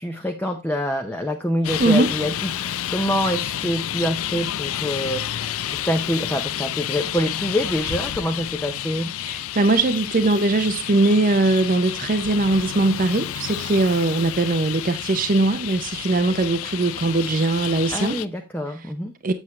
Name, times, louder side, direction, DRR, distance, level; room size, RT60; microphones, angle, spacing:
voice 1, 0.0-9.1 16.4-16.5 17.9-19.1, equal, 10° left, 0.6 m, -26 dB
Traffic noise roadway noise, 1.6-18.3, left 11 dB, 75° left, 0.4 m, -30 dB
voice 2, 9.2-18.2 19.2-19.3, right 2 dB, 40° right, 0.5 m, -20 dB
7.8 x 7.2 x 3.1 m
head